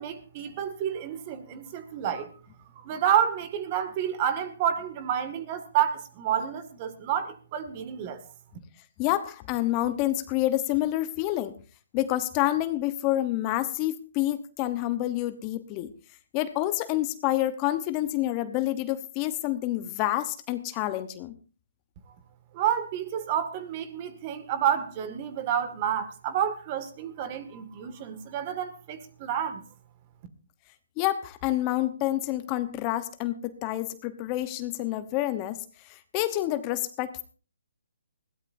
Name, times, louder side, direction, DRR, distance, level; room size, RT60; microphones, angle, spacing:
voice 1, 0.0-2.3 2.7-8.2 22.5-29.6, right 9 dB, 30° right, 2.0 m, -29 dB
voice 2, 9.0-11.5 11.9-15.9 16.3-21.3 31.0-37.2, left 15 dB, 25° left, 1.0 m, -28 dB
21.0 x 16.5 x 2.7 m
figure-of-eight pair, 145°, 0 cm